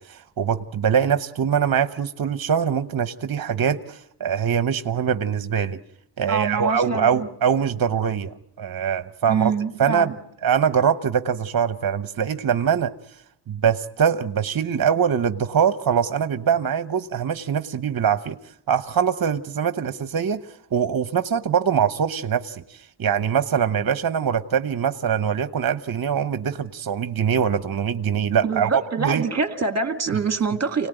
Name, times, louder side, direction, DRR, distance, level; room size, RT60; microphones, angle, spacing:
voice 1, 0.0-5.8 6.2-9.5 9.8-10.1 10.4-12.9 13.5-18.4 18.7-20.4 20.7-29.2, right 7 dB, 50° right, 11 dB, 1.0 m, -23 dB
voice 2, 6.3-7.1 9.3-10.2 28.4-30.9, right 5 dB, 35° right, 7 dB, 2.2 m, -25 dB
29.0 x 19.0 x 9.2 m, 0.79 s
wide cardioid pair, 150°, 46 cm